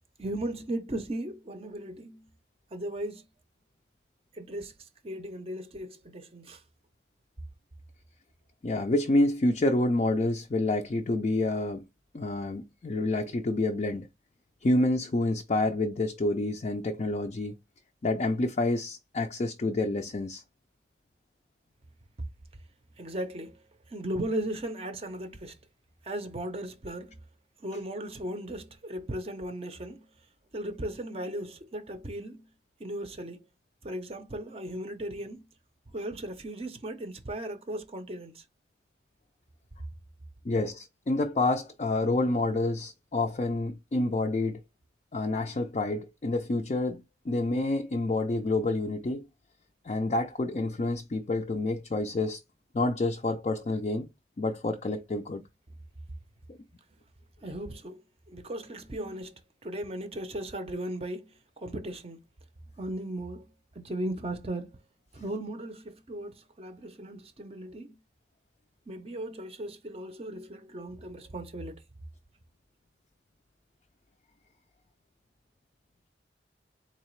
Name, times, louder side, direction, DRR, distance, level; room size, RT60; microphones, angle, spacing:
voice 1, 0.2-2.3 2.7-3.2 4.3-6.6 23.0-25.6 26.0-27.2 27.6-30.1 30.5-32.5 32.8-33.4 33.8-35.5 35.9-38.4 57.4-58.0 58.3-62.2 62.8-63.5 63.7-64.7 65.1-68.0 68.9-71.8, right 1 dB, 30° right, 0.5 m, -37 dB
voice 2, 8.6-11.8 12.1-14.1 14.6-17.6 18.0-20.4 40.4-44.6 45.1-49.2 49.8-52.4 52.7-54.1 54.4-55.4, left 2 dB, 35° left, 0.4 m, -28 dB
3.9 x 2.8 x 3.1 m
head